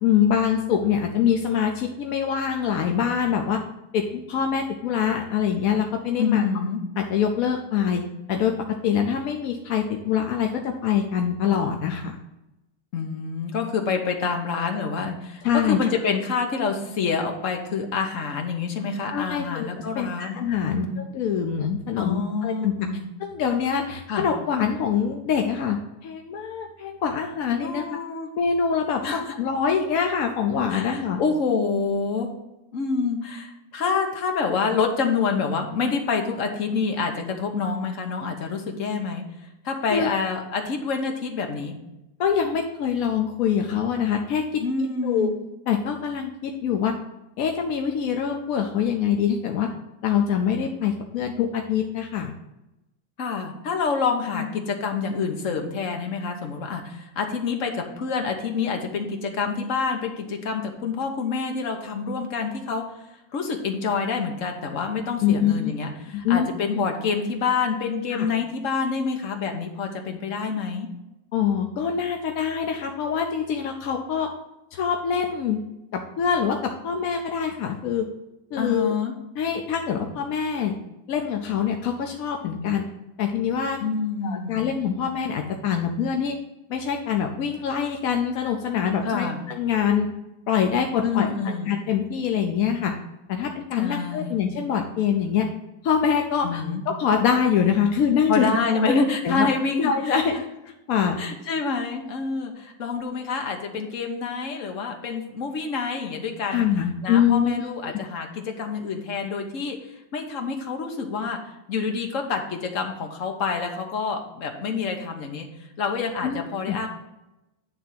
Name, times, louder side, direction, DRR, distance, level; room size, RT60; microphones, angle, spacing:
voice 1, 0.0-3.6 3.9-6.4 7.0-8.0 8.3-8.5 8.8-12.1 15.4-15.8 19.1-19.7 19.9-22.9 23.2-28.0 28.3-31.2 39.9-40.1 42.2-44.6 45.0-45.3 45.7-46.9 47.4-49.7 50.0-52.3 54.3-54.5 65.2-65.7 66.1-66.5 68.1-68.3 71.3-74.3 74.7-75.6 75.9-78.1 78.5-78.9 79.4-80.8 81.1-82.9 83.2-83.8 84.2-86.3 86.7-90.1 90.5-92.9 93.3-95.5 95.8-98.5 98.9-99.5 99.8-100.4 100.9-101.2 106.5-108.0 116.2-116.4 116.7-116.8, left 7 dB, 65° left, 3 dB, 0.8 m, -24 dB
voice 2, 6.2-6.8 12.9-15.4 15.7-21.0 22.0-23.0 24.1-24.3 27.6-28.3 29.0-29.3 30.7-32.3 32.7-39.2 39.6-41.7 44.6-45.3 53.2-62.8 63.3-70.9 78.6-79.1 83.8-84.7 89.0-89.4 91.0-91.7 93.8-94.4 96.4-96.8 98.3-100.4 101.2-106.6 107.0-111.4 111.7-115.5 115.8-116.9, left 5 dB, 50° left, 3 dB, 1.2 m, -27 dB
9.4 x 3.4 x 5.8 m, 0.95 s
omnidirectional pair, 2.1 m